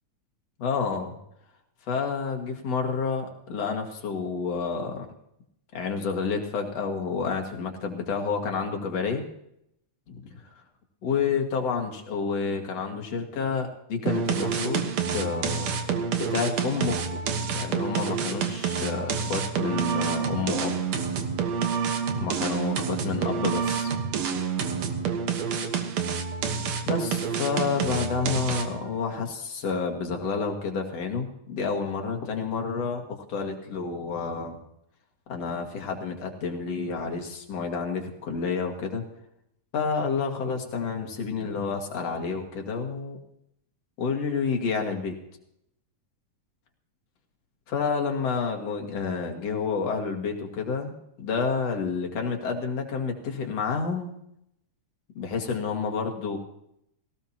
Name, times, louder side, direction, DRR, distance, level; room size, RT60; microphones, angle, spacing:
voice 1, 0.6-1.2 1.9-5.1 5.7-9.2 10.1-10.4 11.0-15.8 16.2-17.2 17.5-20.8 22.2-23.9 26.9-34.6 35.3-39.0 39.7-43.2 44.0-45.1 47.7-50.9 51.2-54.1 55.1-56.4, left 5 dB, 55° left, 3 dB, 3.0 m, -29 dB
sound 1, 14.1-28.9, right 6 dB, 65° right, 2.4 m, -28 dB
18.0 x 18.0 x 2.9 m, 0.77 s
omnidirectional pair, 3.5 m